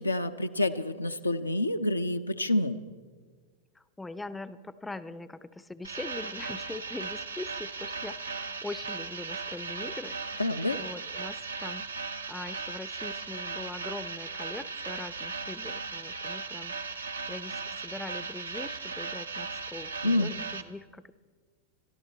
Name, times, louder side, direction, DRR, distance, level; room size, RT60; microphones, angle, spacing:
voice 1, 0.0-2.8 10.4-10.8 20.0-20.3, left 1 dB, 85° left, 7 dB, 0.5 m, -28 dB
voice 2, 3.7-11.9 12.3-21.1, left 2 dB, 10° left, 15 dB, 0.5 m, -42 dB
sound 1, 5.8-20.6, right 4 dB, 75° right, 0.7 m, -37 dB
22.5 x 13.0 x 4.1 m, 1.5 s
figure-of-eight pair, 90°, 0 cm